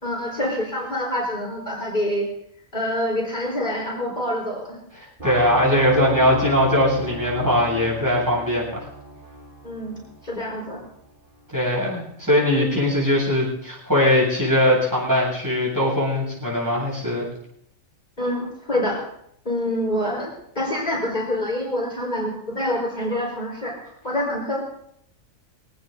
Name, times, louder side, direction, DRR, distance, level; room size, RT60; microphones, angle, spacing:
voice 1, 0.0-2.3 2.7-4.8 9.6-10.8 18.2-19.0 19.4-23.7 24.0-24.6, left 1 dB, 35° left, -3 dB, 4.5 m, -26 dB
voice 2, 5.0-8.8 11.5-17.3, left 1 dB, 15° right, -5 dB, 8.0 m, -20 dB
sound 1, 5.2-11.1, right 1 dB, 40° right, 2.6 m, -35 dB
23.0 x 18.0 x 2.7 m, 0.71 s
omnidirectional pair, 1.4 m